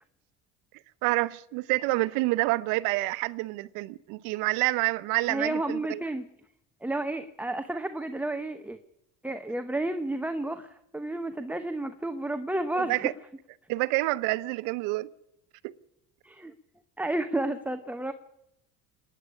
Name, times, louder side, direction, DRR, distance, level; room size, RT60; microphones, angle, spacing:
voice 1, 1.0-6.0 12.8-13.1 13.7-15.1 15.6-15.7, right 21 dB, 85° right, 0.9 m, -28 dB
voice 2, 5.3-6.2 6.8-8.8 9.2-13.0 16.2-16.5 17.0-18.1, right 2 dB, 5° right, 0.9 m, -31 dB
26.0 x 10.0 x 9.7 m
cardioid pair, 120°, 31 cm